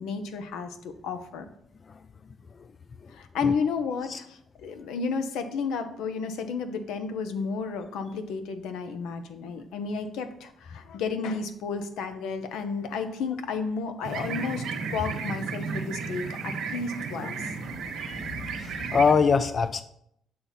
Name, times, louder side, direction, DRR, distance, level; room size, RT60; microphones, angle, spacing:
voice 1, 0.0-1.5 3.1-14.7 14.9-17.5, left 5 dB, 90° left, 9 dB, 0.6 m, -32 dB
sound 1, 14.0-19.1, right 5 dB, 75° right, 1.1 m, -33 dB
voice 2, 18.6-19.8, left 5 dB, 40° left, 12 dB, 0.3 m, -23 dB
7.6 x 2.8 x 5.7 m, 0.73 s
cardioid pair, 90°, 0 cm